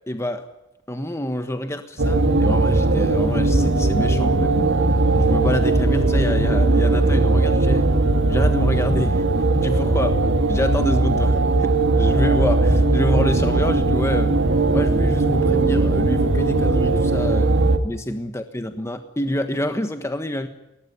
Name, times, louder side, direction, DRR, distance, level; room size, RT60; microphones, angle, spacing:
voice 1, 0.1-0.5 0.9-4.7 5.1-7.9 8.3-10.2 10.5-14.3 14.7-17.5 17.8-20.5, left 1 dB, 15° left, 7 dB, 1.4 m, -27 dB
sound 1, 2.0-17.8, right 2 dB, 65° right, 2.2 m, -18 dB
22.0 x 18.0 x 9.8 m, 0.93 s
head